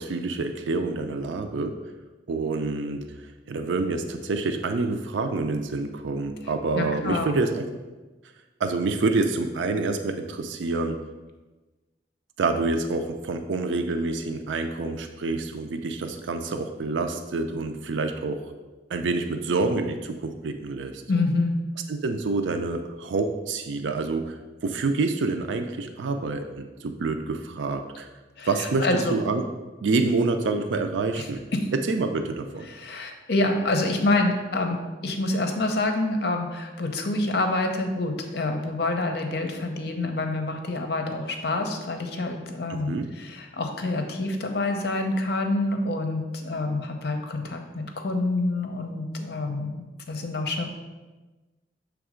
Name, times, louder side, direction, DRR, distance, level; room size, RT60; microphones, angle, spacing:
voice 1, 0.0-1.8 2.3-3.0 3.5-7.6 8.6-11.0 12.4-18.4 18.9-21.0 21.9-24.3 24.6-28.1 28.5-29.5 29.8-31.4 31.7-32.7 42.7-43.1, right 3 dB, 90° right, 6 dB, 0.4 m, -27 dB
voice 2, 6.7-7.4 21.1-21.6 28.4-29.1 31.1-31.7 32.7-34.8 35.0-50.7, left 2 dB, 60° left, 4 dB, 0.7 m, -27 dB
6.3 x 3.4 x 4.9 m, 1.2 s
head